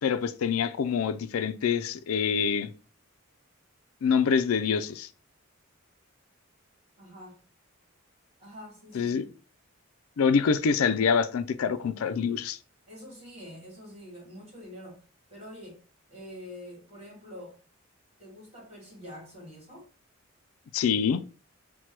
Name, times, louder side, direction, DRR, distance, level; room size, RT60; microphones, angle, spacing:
voice 1, 0.0-2.7 4.0-5.1 8.9-9.3 10.2-12.6 20.7-21.2, left 6 dB, 85° left, 0.4 m, -25 dB
voice 2, 7.0-7.4 8.4-9.3 12.9-15.8 16.1-17.6 18.2-19.9, equal, 30° right, 2.5 m, -46 dB
4.4 x 2.2 x 4.5 m
head